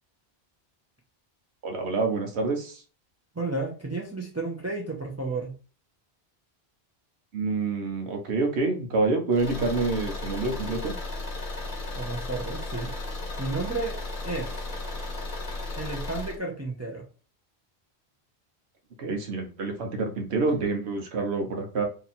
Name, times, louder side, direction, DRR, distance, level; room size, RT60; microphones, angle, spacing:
voice 1, 1.6-2.8 7.3-10.9 19.0-21.8, right 3 dB, 85° right, 4 dB, 1.1 m, -27 dB
voice 2, 3.3-5.5 12.0-12.9 13.4-14.0 14.2-14.5 15.8-17.0, right 3 dB, 20° right, -1 dB, 0.4 m, -32 dB
Car / Engine, 9.3-16.4, left 2 dB, 40° left, 0.8 m, -35 dB
2.8 x 2.7 x 4.1 m, 0.37 s
omnidirectional pair, 1.1 m